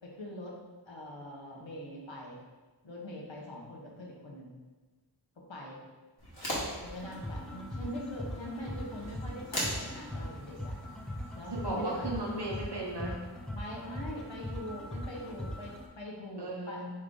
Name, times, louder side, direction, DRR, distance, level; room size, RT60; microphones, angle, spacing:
voice 1, 0.0-0.6 0.8-2.4 2.8-4.6 5.4-5.8 6.8-10.8 11.3-12.1 13.5-16.8, equal, 80° left, -2 dB, 1.0 m, -43 dB
sound 1, 6.2-12.6, equal, 55° left, 1.4 m, -41 dB
sound 2, 6.8-15.8, left 1 dB, ahead, 0.6 m, -41 dB
voice 2, 11.5-13.2 16.4-16.9, right 1 dB, 60° right, -2 dB, 0.9 m, -35 dB
3.7 x 3.2 x 3.7 m, 1.3 s
wide cardioid pair, 45°, 45 cm